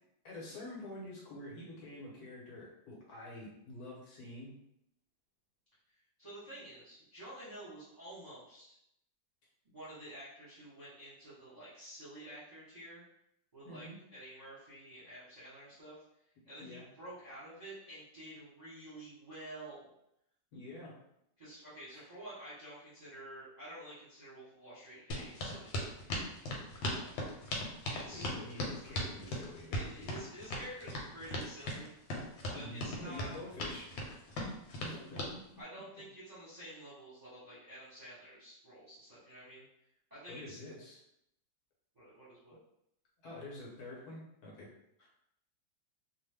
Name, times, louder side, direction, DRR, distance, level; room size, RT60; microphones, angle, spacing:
voice 1, 0.2-4.5 13.6-14.0 16.6-16.8 20.5-20.9 21.9-22.0 28.1-30.1 32.5-34.2 34.8-35.4 40.3-41.0 43.2-44.7 45.0-45.1, left 1 dB, 60° left, -5 dB, 1.2 m, -47 dB
voice 2, 6.2-8.8 9.6-13.0 13.5-16.0 16.4-19.9 21.4-25.8 26.8-27.2 27.9-28.3 29.7-31.9 32.5-33.3 35.6-39.7 40.1-40.8 41.9-42.6, right 1 dB, 30° right, -11 dB, 0.8 m, -50 dB
sound 1, 25.1-35.3, left 1 dB, 85° left, 1.4 m, -38 dB
3.0 x 2.1 x 3.3 m, 0.78 s
omnidirectional pair, 2.0 m